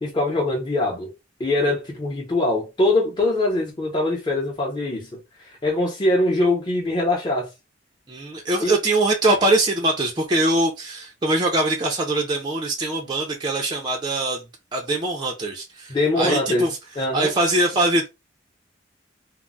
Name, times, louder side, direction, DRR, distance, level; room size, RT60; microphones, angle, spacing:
voice 1, 0.0-1.1 1.4-5.1 5.6-7.5 8.6-8.7 15.9-16.7 17.0-17.3, left 2 dB, 25° left, 0.8 m, -22 dB
voice 2, 8.1-14.4 14.7-16.8 17.1-18.1, right 2 dB, 25° right, 0.4 m, -22 dB
2.2 x 2.0 x 3.7 m
head